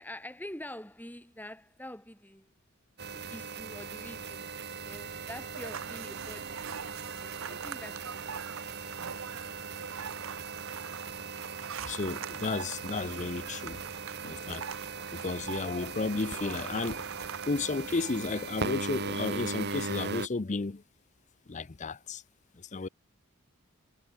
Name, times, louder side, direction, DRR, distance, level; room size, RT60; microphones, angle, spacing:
voice 1, 0.0-2.5 3.1-4.5 4.8-6.7 7.2-8.2, left 1 dB, 10° left, 4.1 m, -45 dB
sound 1, 3.0-20.3, right 5 dB, 50° right, 1.3 m, -39 dB
sound 2, 5.5-18.5, right 7 dB, 65° right, 0.8 m, -43 dB
voice 2, 11.8-13.8 14.2-14.7 14.9-20.8 21.5-22.2 22.6-22.9, left 3 dB, 35° left, 0.6 m, -33 dB
head